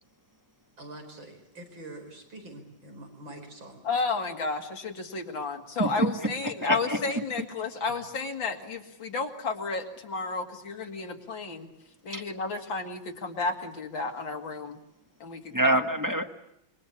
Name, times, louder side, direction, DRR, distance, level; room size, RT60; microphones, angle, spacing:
voice 1, 0.8-3.8, right 2 dB, 75° right, 4 dB, 5.7 m, -45 dB
voice 2, 3.8-11.7 12.0-14.8 15.2-15.7, left 4 dB, 75° left, 4 dB, 3.0 m, -32 dB
voice 3, 5.8-6.1 6.4-7.0 12.1-12.2 15.5-16.2, right 1 dB, 10° right, 7 dB, 1.3 m, -26 dB
27.0 x 23.5 x 8.5 m, 0.79 s
omnidirectional pair, 2.1 m